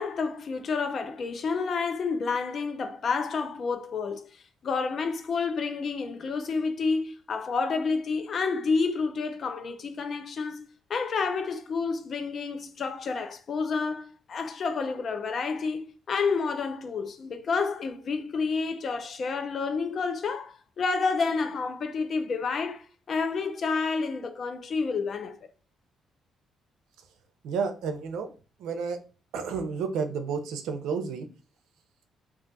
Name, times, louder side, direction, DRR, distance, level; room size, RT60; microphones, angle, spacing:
voice 1, 0.0-25.4, left 4 dB, 50° left, 0.5 m, -29 dB
voice 2, 27.4-28.3 28.6-29.0 29.3-31.3, right 5 dB, 90° right, 0.5 m, -31 dB
2.5 x 2.3 x 3.9 m
cardioid pair, 90°, 0 cm